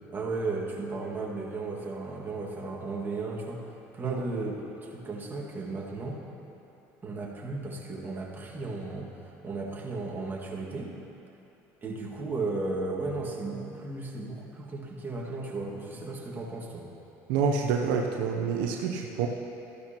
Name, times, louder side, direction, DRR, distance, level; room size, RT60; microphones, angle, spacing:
voice 1, 0.1-6.2 7.0-10.9 11.8-16.9, right 3 dB, 25° right, -3 dB, 1.9 m, -35 dB
voice 2, 17.3-19.3, right 6 dB, 75° right, 2 dB, 0.7 m, -27 dB
13.5 x 12.0 x 2.9 m, 3.0 s
supercardioid pair, 90°, 8 cm